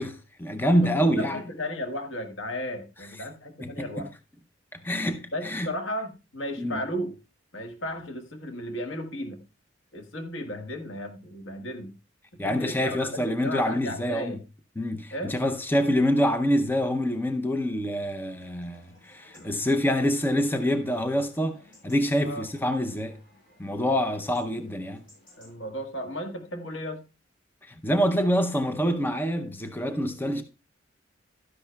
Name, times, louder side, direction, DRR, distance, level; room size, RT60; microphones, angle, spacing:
voice 1, 0.0-1.4 3.6-4.1 4.7-5.7 6.6-6.8 12.4-14.4 14.8-23.2 23.6-25.0 27.6-30.4, equal, 10° left, 0.5 m, -26 dB
voice 2, 1.1-4.1 5.3-7.2 7.5-9.4 9.9-12.0 12.4-14.4 15.1-15.3 19.3-19.7 22.2-22.4 25.4-27.0, equal, 75° left, 1.5 m, -35 dB
Chatter / Livestock farm animals working animals / Chirp tweet, 18.3-25.5, left 1 dB, 45° left, 6.8 m, -57 dB
12.5 x 10.0 x 2.2 m
head